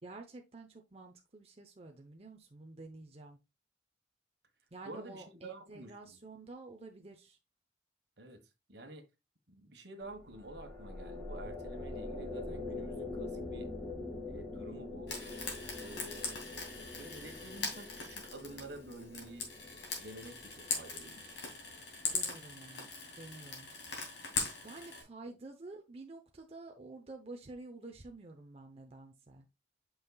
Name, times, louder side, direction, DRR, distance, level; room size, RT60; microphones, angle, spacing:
voice 1, 0.0-3.4 4.7-7.4 22.1-23.7 24.6-29.5, right 2 dB, 35° right, 0.8 m, -50 dB
voice 2, 4.8-6.2 8.2-8.4 8.7-9.0 9.5-13.7 14.2-15.1 15.8-16.3 17.0-19.5 19.9-21.4, right 2 dB, 65° right, 1.4 m, -49 dB
sound 1, 10.1-21.5, left 2 dB, 10° left, 1.7 m, -44 dB
Frying (food), 15.1-25.0, left 4 dB, 75° left, 2.6 m, -41 dB
8.3 x 5.6 x 2.3 m
head